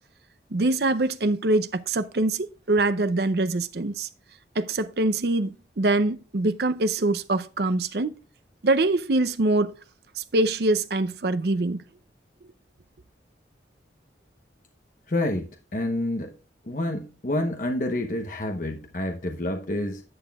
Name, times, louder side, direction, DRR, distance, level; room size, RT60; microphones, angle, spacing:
voice 1, 0.5-4.1 4.6-8.1 8.6-9.7 10.2-11.8, right 2 dB, 65° right, 0.6 m, -24 dB
voice 2, 15.1-16.3 16.6-20.0, left 1 dB, 45° left, 0.9 m, -28 dB
11.0 x 8.1 x 2.3 m
head